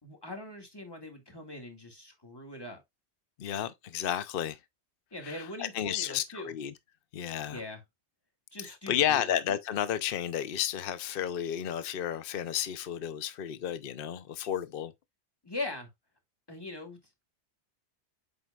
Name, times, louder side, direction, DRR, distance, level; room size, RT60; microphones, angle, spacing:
voice 1, 0.0-2.8 5.1-6.5 7.5-7.8 8.5-9.3 15.4-15.9 16.5-17.0, left 2 dB, 20° left, 2.0 m, -41 dB
voice 2, 3.4-4.6 5.2-6.7 7.1-7.6 8.6-14.9, left 10 dB, 55° left, 0.9 m, -32 dB
7.7 x 5.3 x 2.4 m
omnidirectional pair, 1.2 m